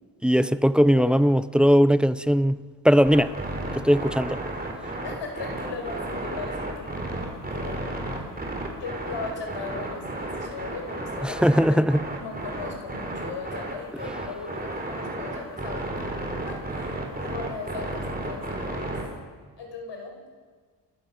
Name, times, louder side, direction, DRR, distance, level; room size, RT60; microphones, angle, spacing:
voice 1, 0.2-2.6 2.8-3.3 3.8-4.4 11.2-12.0, equal, ahead, 0.5 m, -19 dB
sound 1, 3.0-19.1, right 2 dB, 20° right, 4.0 m, -33 dB
voice 2, 5.0-8.2 8.8-16.2 16.5-19.0 19.6-20.3, left 4 dB, 90° left, 5.3 m, -38 dB
29.5 x 13.5 x 7.0 m
wide cardioid pair, 120°, 42 cm